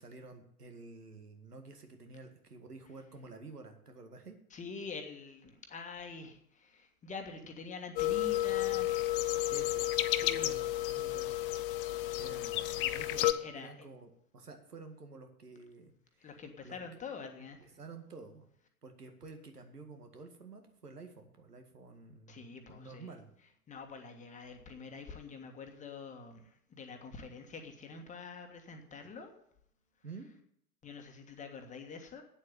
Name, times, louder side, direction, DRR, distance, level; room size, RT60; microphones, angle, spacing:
voice 1, 0.0-4.4 9.5-9.9 10.2-11.3 11.9-15.9 16.2-16.3 16.6-16.8 17.6-18.5 18.8-23.3 30.0-30.3, right 3 dB, 80° right, 6 dB, 2.1 m, -50 dB
voice 2, 4.5-9.0 10.2-10.6 13.1-13.9 16.2-17.7 22.3-23.1 23.7-29.3 30.8-32.2, left 4 dB, 15° left, 4 dB, 1.6 m, -46 dB
sound 1, 8.0-13.3, left 15 dB, 35° left, 0.7 m, -31 dB
9.0 x 7.8 x 9.0 m, 0.71 s
figure-of-eight pair, 105°, 45 cm